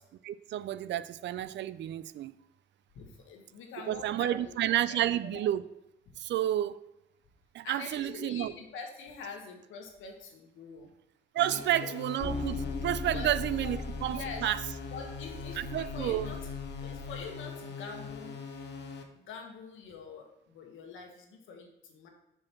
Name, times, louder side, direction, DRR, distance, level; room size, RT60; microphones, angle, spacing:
voice 1, 0.2-2.3 3.9-5.7 6.2-6.8 7.5-8.5 11.3-14.6 15.6-16.3, right 12 dB, 65° right, 0.4 m, -31 dB
voice 2, 2.9-4.6 4.9-5.4 7.6-10.9 11.5-11.9 13.1-13.3 13.6-13.7 14.1-14.5 14.9-16.4 16.8-18.4 19.1-22.1, left 4 dB, 80° left, 1.4 m, -45 dB
sound 1, 11.4-19.0, left 5 dB, 60° left, 1.0 m, -42 dB
sound 2, 12.2-17.3, left 3 dB, 15° left, 0.3 m, -39 dB
5.0 x 4.8 x 5.8 m
cardioid pair, 90°, 20 cm